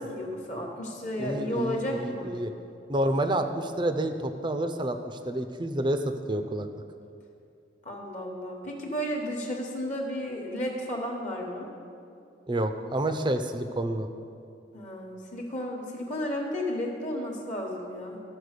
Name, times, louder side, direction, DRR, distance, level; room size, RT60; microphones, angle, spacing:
voice 1, 0.0-2.3 7.8-11.7 14.7-18.2, equal, 40° left, 1 dB, 1.1 m, -33 dB
voice 2, 1.2-2.5 2.9-6.7 12.5-14.1, right 1 dB, 25° right, 8 dB, 0.5 m, -29 dB
12.5 x 4.5 x 6.5 m, 2.5 s
head